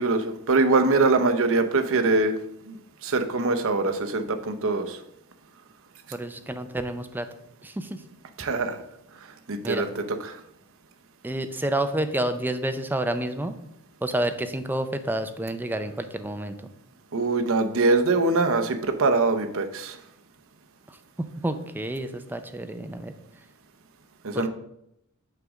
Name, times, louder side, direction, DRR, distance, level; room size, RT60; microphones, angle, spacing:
voice 1, 0.0-2.3 2.7-2.8 3.0-5.0 8.4-8.8 9.5-10.4 17.1-20.0 24.2-24.5, right 3 dB, 65° right, 7 dB, 0.7 m, -23 dB
voice 2, 6.1-7.3 7.6-8.0 9.6-9.8 11.2-13.5 14.0-16.5 21.2-23.1 24.3-24.5, right 1 dB, 10° right, 8 dB, 0.5 m, -29 dB
6.6 x 3.6 x 6.2 m, 0.78 s
head